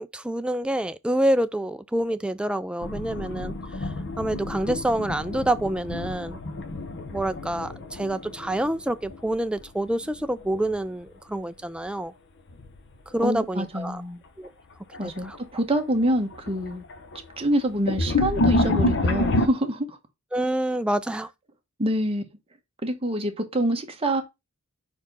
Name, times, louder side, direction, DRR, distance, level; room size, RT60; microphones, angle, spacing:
voice 1, 0.0-3.9 4.2-6.4 7.1-12.1 13.1-14.0 14.4-14.5 15.0-15.4 20.3-21.3, right 1 dB, 5° right, 0.3 m, -27 dB
sound 1, 2.8-9.6 9.9-10.8 12.5-12.8 13.4-13.5 14.4-14.5 14.9-15.4 15.8-19.5, left 2 dB, 55° left, 0.7 m, -28 dB
voice 2, 13.2-14.2 15.0-16.8 17.4-20.0 21.8-22.2 22.8-24.2, right 1 dB, 25° right, 1.1 m, -26 dB
4.6 x 4.4 x 5.3 m
head